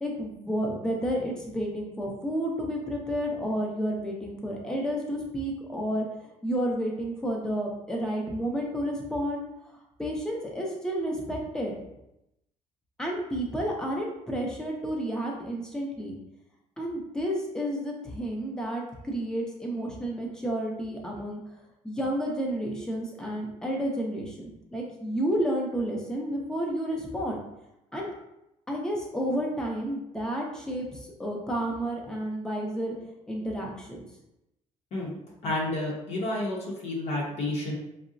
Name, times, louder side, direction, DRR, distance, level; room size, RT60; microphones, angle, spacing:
voice 1, 0.0-9.4 10.0-11.8 13.0-16.1 16.8-21.4 21.8-27.4 27.9-28.1 28.7-32.9 33.3-34.1, equal, 5° left, -1 dB, 0.5 m, -31 dB
voice 2, 35.4-37.7, left 2 dB, 55° left, -3 dB, 0.7 m, -30 dB
3.6 x 2.0 x 2.5 m, 0.85 s
cardioid pair, 155°, 13 cm